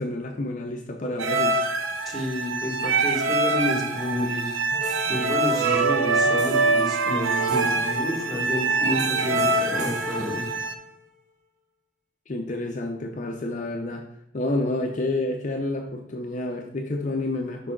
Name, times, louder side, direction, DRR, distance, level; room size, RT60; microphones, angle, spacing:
voice 1, 0.0-1.6 12.3-14.1 14.3-17.7, left 2 dB, 40° left, 2 dB, 0.6 m, -29 dB
sound 1, 1.2-10.7, right 3 dB, 90° right, 0.6 m, -24 dB
voice 2, 2.1-4.5 5.1-10.5, left 1 dB, ahead, -3 dB, 1.7 m, -30 dB
sound 2, 4.7-11.0, right 5 dB, 40° right, 0.7 m, -33 dB
6.1 x 5.5 x 3.7 m, 0.79 s
head